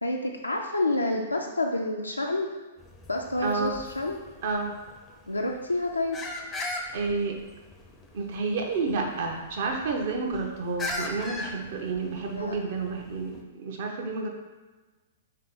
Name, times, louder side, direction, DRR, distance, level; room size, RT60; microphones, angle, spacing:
voice 1, 0.0-2.5 3.1-4.2 5.3-6.2 12.3-12.5, left 2 dB, 85° left, 1 dB, 0.3 m, -28 dB
sound 1, 2.8-13.4, left 2 dB, 15° left, 0.4 m, -40 dB
voice 2, 3.4-3.7 4.4-4.7 6.9-7.4 8.1-14.3, right 4 dB, 55° right, 2 dB, 0.6 m, -30 dB
3.3 x 2.9 x 3.5 m, 1.2 s
figure-of-eight pair, 110°, 0 cm